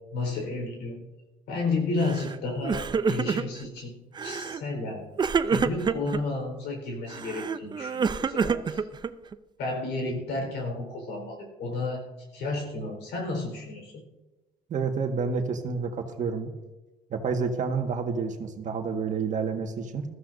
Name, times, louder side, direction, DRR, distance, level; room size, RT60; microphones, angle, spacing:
voice 1, 0.1-1.0 1.5-3.9 4.2-5.0 5.5-8.8 9.6-13.9, left 3 dB, 80° left, 2 dB, 4.4 m, -32 dB
Crying sobbing, 2.0-2.4 2.6-3.7 4.2-4.6 5.2-6.2 7.1-9.3, right 6 dB, 25° right, 0.5 m, -27 dB
voice 2, 14.7-16.5 17.1-20.0, right 5 dB, 45° right, 4 dB, 1.7 m, -29 dB
20.0 x 14.5 x 2.7 m, 1.1 s
cardioid pair, 110°, 17 cm